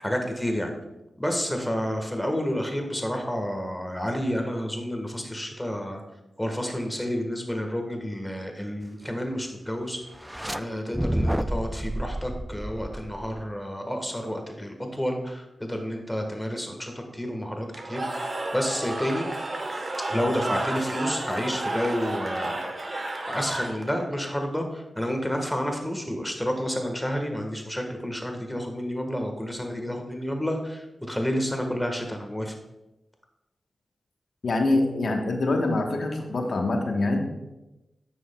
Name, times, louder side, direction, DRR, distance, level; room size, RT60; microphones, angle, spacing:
voice 1, 0.0-0.7 1.2-6.0 6.4-10.0 10.5-19.3 20.1-22.7 23.3-32.5, equal, 5° left, 4 dB, 1.4 m, -30 dB
sound 1, 10.1-10.6 10.9-13.5, right 1 dB, 10° right, 0.3 m, -29 dB
Cheering / Crowd, 17.7-24.1, right 2 dB, 50° right, 1.1 m, -32 dB
voice 2, 34.4-37.2, left 2 dB, 70° left, 3 dB, 1.1 m, -24 dB
9.2 x 6.2 x 2.3 m, 0.97 s
cardioid pair, 45°, 0 cm